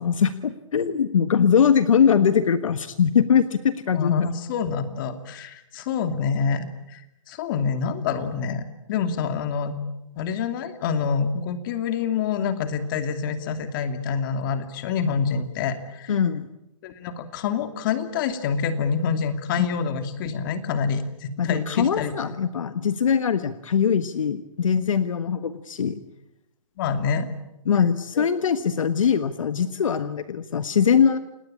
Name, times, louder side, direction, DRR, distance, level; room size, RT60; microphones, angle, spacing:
voice 1, 0.0-4.3 16.1-16.5 21.4-26.0 27.7-31.2, left 7 dB, 70° left, 11 dB, 1.4 m, -21 dB
voice 2, 3.9-7.0 7.3-9.8 10.2-16.1 16.8-22.1 26.8-27.3 28.1-28.3, left 6 dB, 40° left, 8 dB, 2.7 m, -27 dB
29.0 x 19.5 x 8.7 m, 0.88 s
hypercardioid pair, 150°, 17 cm